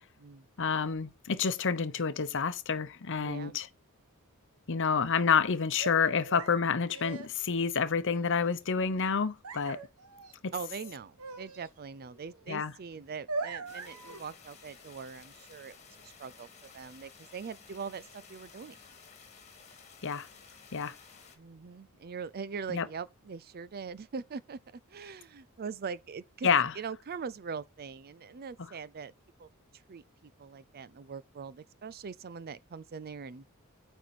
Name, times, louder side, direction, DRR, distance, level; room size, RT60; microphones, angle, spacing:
voice 1, 0.6-3.7 4.7-9.8 10.4-10.5 12.5-12.7 20.0-20.3 20.7-20.9 22.7-22.9 26.4-26.7, left 6 dB, 60° left, 0.8 m, -28 dB
voice 2, 3.2-3.6 10.5-15.7 16.0-16.5 16.7-18.8 21.4-26.5 26.8-29.1 29.4-29.5 29.9-33.4, right 5 dB, 45° right, 0.5 m, -42 dB
sound 1, 5.8-7.6 8.1-8.4 9.4-10.4 10.6-11.7 12.1-12.6 12.9-14.2, right 3 dB, 85° right, 1.2 m, -41 dB
sound 2, 13.7-21.4, left 6 dB, 30° left, 2.0 m, -55 dB
9.4 x 4.5 x 4.2 m
head